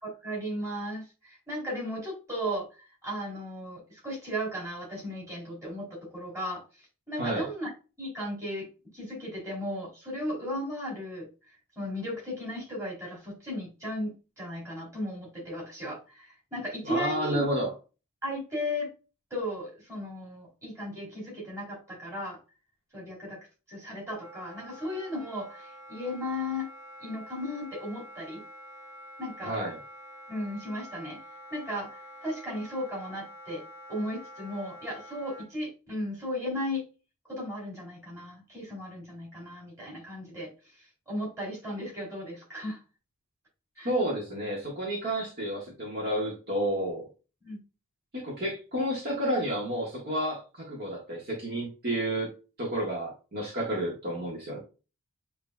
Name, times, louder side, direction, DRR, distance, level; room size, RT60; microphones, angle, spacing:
voice 1, 0.0-7.7 8.0-8.7 8.9-11.3 11.8-17.4 18.2-18.9 19.3-22.4 22.9-23.4 23.7-26.7 27.0-28.4 29.2-29.6 30.3-31.2 31.5-33.6 33.9-36.8 37.3-40.5 40.8-42.8 43.8-43.9 47.4-47.6, equal, 15° right, -4 dB, 2.6 m, -36 dB
voice 2, 16.8-17.7 29.4-29.8 43.8-47.0 48.1-52.3 52.6-54.6, right 1 dB, 45° right, -3 dB, 1.5 m, -30 dB
Wind instrument woodwind instrument, 24.2-35.5, equal, 60° right, 1.4 m, -47 dB
8.0 x 2.9 x 2.2 m, 0.32 s
head